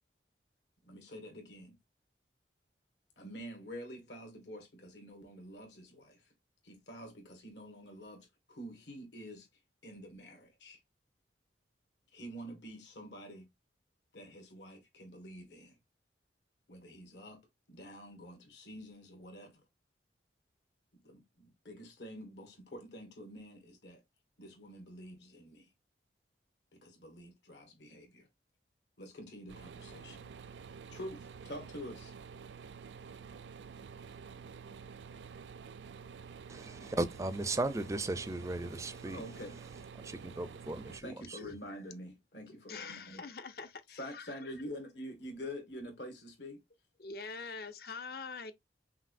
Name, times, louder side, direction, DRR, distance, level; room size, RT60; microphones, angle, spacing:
voice 1, 0.8-1.8 3.2-6.2 6.6-9.5 9.8-10.8 12.1-13.5 14.1-15.7 16.7-17.4 17.7-19.6 21.0-24.0 24.4-25.7 26.7-28.3 29.0-30.3 30.9-32.1 39.0-39.6 41.0-43.2 44.0-46.6, equal, 75° left, 1.7 m, -47 dB
sound 1, 29.5-41.0, right 6 dB, 80° right, 0.4 m, -49 dB
voice 2, 36.5-39.3 40.0-41.5, right 2 dB, 15° right, 0.4 m, -36 dB
voice 3, 42.7-44.4 47.0-48.5, left 4 dB, 55° left, 0.6 m, -44 dB
5.7 x 2.7 x 2.5 m
head